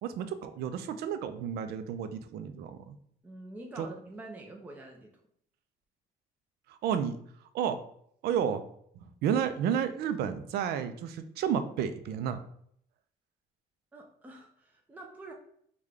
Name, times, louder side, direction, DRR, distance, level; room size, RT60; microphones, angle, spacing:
voice 1, 0.0-3.0 3.8-3.9 6.7-7.2 7.5-7.8 8.2-8.6 9.0-12.4, right 8 dB, 70° right, 10 dB, 0.4 m, -31 dB
voice 2, 3.2-5.1 13.9-15.3, right 2 dB, 10° right, 1 dB, 0.4 m, -46 dB
3.6 x 2.2 x 3.1 m, 0.67 s
cardioid pair, 110°, 17 cm